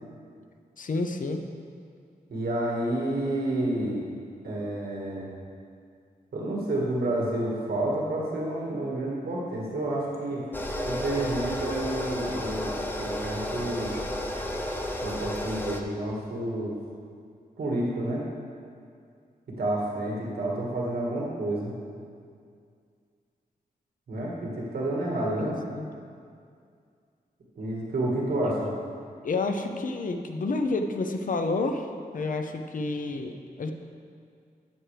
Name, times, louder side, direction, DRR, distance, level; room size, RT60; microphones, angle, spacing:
voice 1, 0.8-1.4 25.4-25.9 29.2-31.9 32.1-33.7, left 3 dB, 60° left, 6 dB, 0.7 m, -29 dB
voice 2, 2.3-4.1 4.4-5.3 6.3-10.4 10.8-13.9 15.0-16.8 17.6-18.3 19.6-21.7 24.1-25.6 27.6-28.7, right 1 dB, 85° right, -4 dB, 1.7 m, -29 dB
sound 1, 10.5-15.8, left 1 dB, 15° left, 0.7 m, -32 dB
13.5 x 7.7 x 3.4 m, 2.3 s
wide cardioid pair, 130°, 16 cm